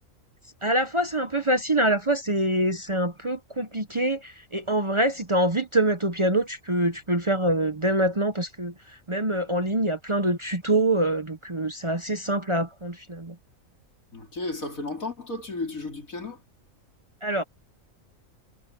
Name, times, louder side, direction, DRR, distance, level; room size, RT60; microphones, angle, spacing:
voice 1, 0.6-8.7 9.1-13.3 17.2-17.4, right 1 dB, 25° right, 0.8 m, -25 dB
voice 2, 14.1-16.4, left 2 dB, 85° left, 4.8 m, -33 dB
omnidirectional pair, 1.4 m